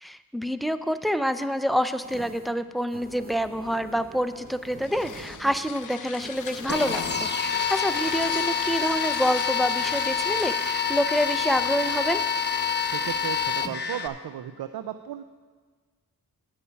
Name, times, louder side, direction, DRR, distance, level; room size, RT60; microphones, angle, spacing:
voice 1, 0.0-12.2, equal, ahead, 10 dB, 0.4 m, -27 dB
sound 1, 2.0-7.2, right 2 dB, 25° right, 1.0 m, -45 dB
sound 2, 4.5-12.0, left 9 dB, 55° left, 0.5 m, -40 dB
sound 3, 6.7-14.1, left 6 dB, 30° left, 0.8 m, -27 dB
voice 2, 12.9-15.2, right 10 dB, 90° right, 11 dB, 0.5 m, -35 dB
9.9 x 8.4 x 5.7 m, 1.5 s
wide cardioid pair, 85°, 37 cm